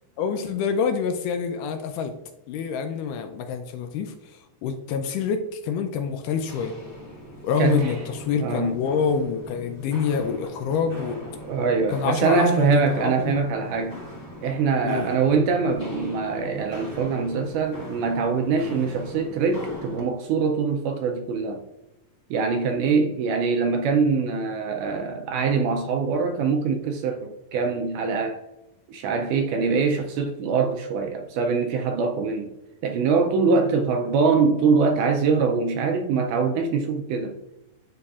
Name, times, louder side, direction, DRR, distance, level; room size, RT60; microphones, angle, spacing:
voice 1, 0.2-2.1 2.5-4.1 4.6-6.8 7.4-11.2 11.9-13.5 14.8-15.1, left 6 dB, 80° left, 2.0 m, -26 dB
Walk footsteps, 6.3-20.1, equal, 60° left, 0.5 m, -40 dB
voice 2, 7.6-8.0 8.4-8.8 11.5-14.0 14.4-21.6 22.3-28.4 28.9-32.5 32.8-37.4, right 5 dB, 80° right, 1.9 m, -23 dB
11.5 x 4.1 x 2.4 m
omnidirectional pair, 4.0 m